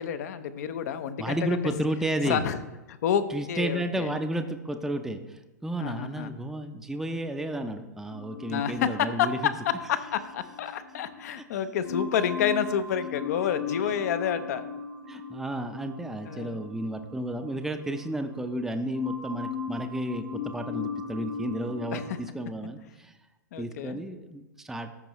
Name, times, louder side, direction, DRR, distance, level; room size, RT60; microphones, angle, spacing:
voice 1, 0.0-1.7 2.2-2.6 2.9-4.1 5.8-6.3 8.5-14.6 16.2-16.6 21.9-22.2 23.5-24.0, left 8 dB, 55° left, 12 dB, 0.8 m, -29 dB
voice 2, 1.2-2.5 3.3-9.4 13.4-13.5 15.1-23.1 23.6-24.9, right 1 dB, 5° right, 6 dB, 0.6 m, -32 dB
sound 1, 8.1-11.4 11.8-18.7 18.9-22.2, left 5 dB, 85° left, 1.5 m, -38 dB
13.5 x 5.3 x 3.0 m, 1.1 s
figure-of-eight pair, 105°, 10 cm